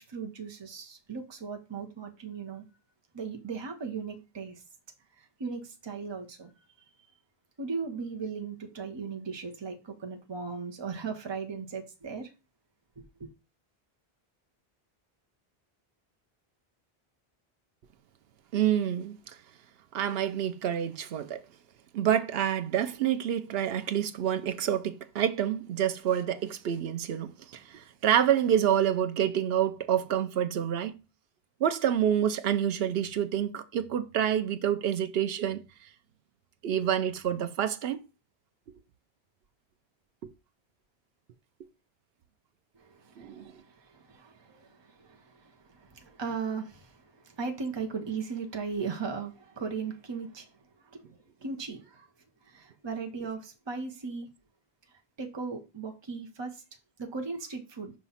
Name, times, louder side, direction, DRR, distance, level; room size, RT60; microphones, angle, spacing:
voice 1, 0.0-2.6 3.1-4.6 5.4-6.5 7.6-12.3 13.0-13.3 42.7-51.0 51.4-52.1 52.4-54.3 55.2-56.6 57.0-57.9, right 5 dB, 30° right, 0.8 m, -37 dB
voice 2, 18.5-19.2 19.9-21.4 21.9-30.9 31.6-35.6 36.6-38.0 43.2-43.5, right 10 dB, 75° right, 0.8 m, -27 dB
5.6 x 3.1 x 5.6 m
omnidirectional pair, 1.0 m